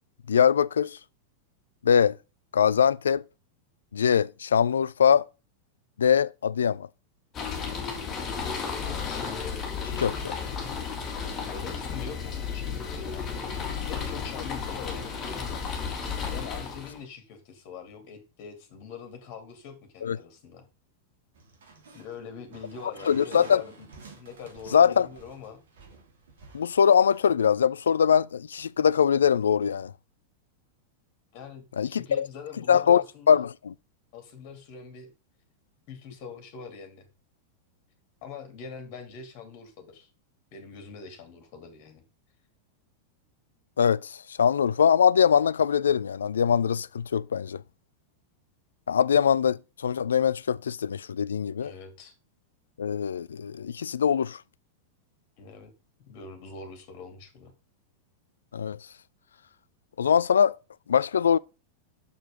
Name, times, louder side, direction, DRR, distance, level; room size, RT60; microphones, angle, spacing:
voice 1, 0.3-1.0 1.8-2.2 2.5-3.2 3.9-5.3 6.0-6.9 10.0-10.3 20.0-20.2 23.1-23.6 24.7-25.1 26.5-29.9 31.8-32.3 32.7-33.5 43.8-47.6 48.9-51.7 52.8-54.4 58.5-58.8 60.0-60.6 60.9-61.4, left 7 dB, 70° left, 0.3 m, -22 dB
sound 1, 7.3-17.0, left 6 dB, 25° left, 2.9 m, -33 dB
voice 2, 8.8-9.6 11.5-13.4 13.8-15.6 16.3-20.6 21.9-23.9 24.1-25.6 31.3-33.4 34.1-35.1 35.9-37.1 38.2-40.1 40.5-42.0 51.6-52.1 55.4-55.7 56.1-57.5, left 6 dB, 45° left, 2.8 m, -43 dB
sound 2, 21.3-27.2, right 4 dB, 60° right, 2.6 m, -50 dB
7.0 x 6.7 x 3.8 m
figure-of-eight pair, 90°, 0 cm